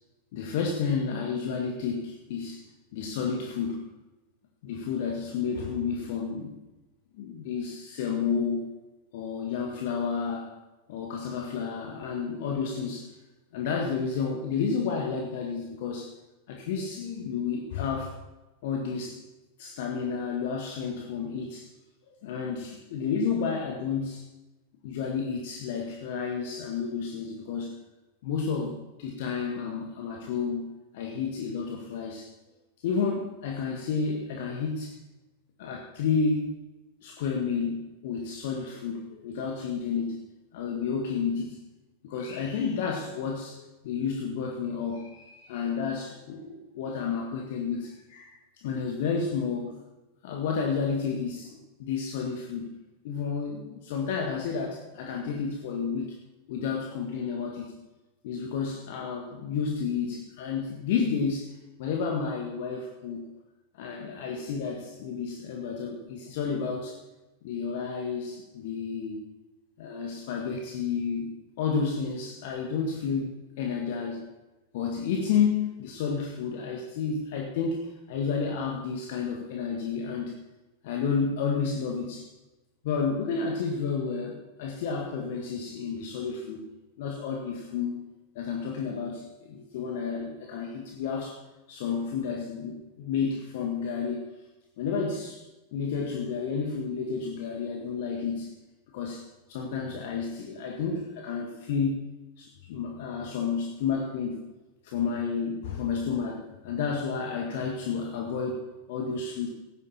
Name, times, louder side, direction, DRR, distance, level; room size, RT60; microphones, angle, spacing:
voice 1, 0.3-2.6 2.9-3.9 4.6-6.6 7.2-8.7 9.1-10.6 10.9-13.1 13.5-16.1 16.5-18.1 18.6-19.2 19.6-21.7 22.1-24.2 24.8-27.7 28.2-30.7 30.9-32.3 32.8-35.0 35.6-36.5 37.0-40.2 40.5-41.6 42.0-49.8 50.2-52.7 53.0-56.1 56.5-57.7 58.2-61.5 61.8-63.3 63.7-67.0 67.4-69.2 69.8-71.3 71.6-74.2 74.7-80.3 80.8-82.3 82.8-86.6 87.0-88.0 88.3-91.4 91.7-94.2 94.8-95.4 95.7-98.5 98.9-102.0 102.4-104.4 104.8-109.5, left 5 dB, 50° left, 1 dB, 1.7 m, -31 dB
16.5 x 9.8 x 4.4 m, 1.0 s
figure-of-eight pair, 90°, 0 cm